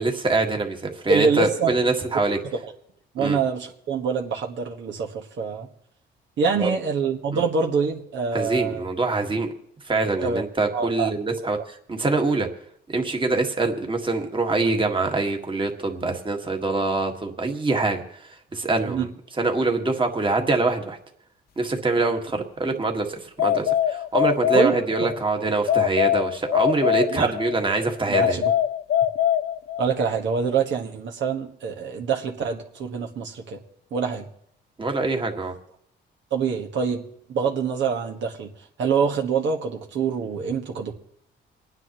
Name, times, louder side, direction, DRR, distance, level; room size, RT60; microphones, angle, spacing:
voice 1, 0.0-2.4 3.2-3.4 6.6-6.7 7.3-7.4 8.3-9.5 9.9-12.5 12.9-19.1 19.4-21.0 21.6-28.4 34.8-35.5, right 3 dB, 25° right, 3 dB, 1.8 m, -24 dB
voice 2, 1.1-1.7 2.5-2.6 3.1-5.7 6.4-8.8 10.2-10.4 10.7-11.1 18.9-19.1 24.5-24.8 27.1-27.3 28.1-28.5 29.8-33.6 33.9-34.3 36.3-37.0 37.3-38.5 38.8-40.9, right 5 dB, 70° right, 0 dB, 1.5 m, -25 dB
sound 1, 23.4-25.2 25.7-27.6 28.1-30.0, left 10 dB, 50° left, 0.4 m, -23 dB
27.5 x 9.7 x 3.0 m, 0.72 s
cardioid pair, 90°, 20 cm